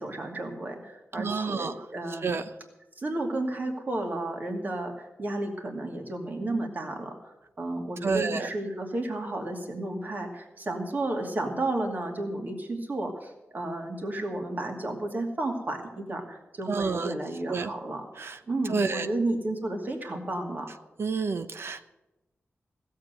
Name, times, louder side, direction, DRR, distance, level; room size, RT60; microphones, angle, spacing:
voice 1, 0.0-2.4 3.0-18.1 18.5-20.7, right 2 dB, 40° right, 2 dB, 2.3 m, -32 dB
voice 2, 1.2-1.7 2.2-2.4 8.0-8.5 16.7-17.1 17.5-17.7 18.2-18.4 18.7-19.1 21.0-21.8, right 4 dB, 60° right, 10 dB, 0.8 m, -29 dB
16.0 x 7.5 x 7.8 m, 1.0 s
wide cardioid pair, 125°, 5 cm